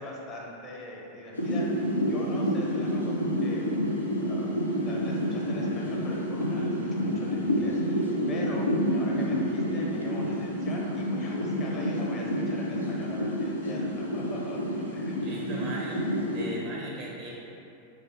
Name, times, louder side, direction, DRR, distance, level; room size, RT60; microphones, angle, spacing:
voice 1, 0.0-1.7 2.1-15.1, left 1 dB, 30° left, -3 dB, 0.6 m, -41 dB
sound 1, 1.3-16.5, equal, 85° left, 0.4 m, -29 dB
voice 2, 15.2-16.0 16.3-17.3, right 1 dB, 40° right, -3 dB, 0.5 m, -38 dB
3.4 x 2.6 x 3.3 m, 2.8 s
figure-of-eight pair, 90°, 0 cm